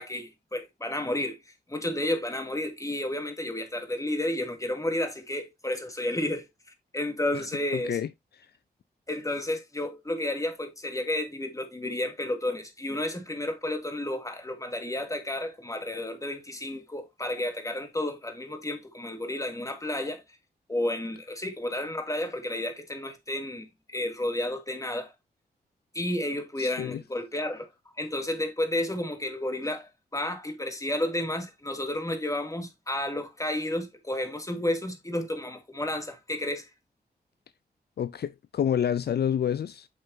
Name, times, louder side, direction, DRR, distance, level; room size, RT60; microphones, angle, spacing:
voice 1, 0.0-1.4 1.7-6.5 6.9-8.0 9.1-20.2 20.7-25.1 25.9-27.7 28.0-36.7, left 1 dB, 20° left, 2.5 m, -31 dB
voice 2, 26.6-27.0 38.0-39.9, left 9 dB, 70° left, 0.5 m, -28 dB
8.5 x 6.8 x 2.8 m
cardioid pair, 65°, 17 cm